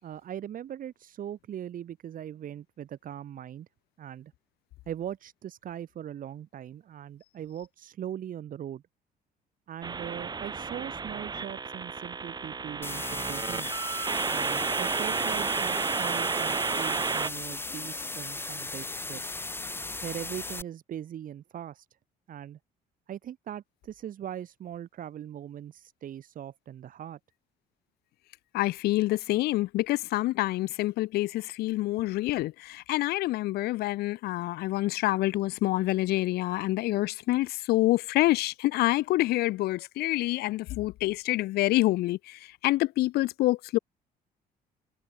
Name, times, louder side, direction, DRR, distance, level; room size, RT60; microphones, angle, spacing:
voice 1, 0.0-3.7 4.0-4.3 4.9-8.8 9.7-13.8 14.3-19.5 20.0-21.9 22.3-22.6 23.1-27.2, right 10 dB, 55° right, 2.9 m, -40 dB
sound 1, 9.8-17.3, right 5 dB, 25° right, 1.4 m, -31 dB
sound 2, 12.8-20.6, left 2 dB, 15° left, 1.2 m, -37 dB
voice 2, 28.5-43.8, left 17 dB, 70° left, 0.5 m, -27 dB
cardioid pair, 110°, 17 cm